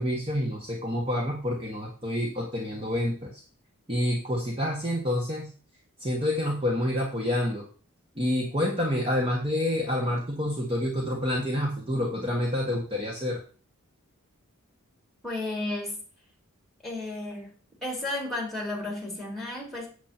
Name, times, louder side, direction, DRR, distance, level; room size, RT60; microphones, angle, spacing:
voice 1, 0.0-3.4 3.9-5.5 6.0-7.6 8.1-13.4, left 1 dB, 25° right, -2 dB, 1.5 m, -28 dB
voice 2, 15.2-16.0 16.8-17.5 17.8-19.9, left 2 dB, ahead, -1 dB, 3.6 m, -33 dB
8.1 x 7.4 x 4.4 m, 0.39 s
head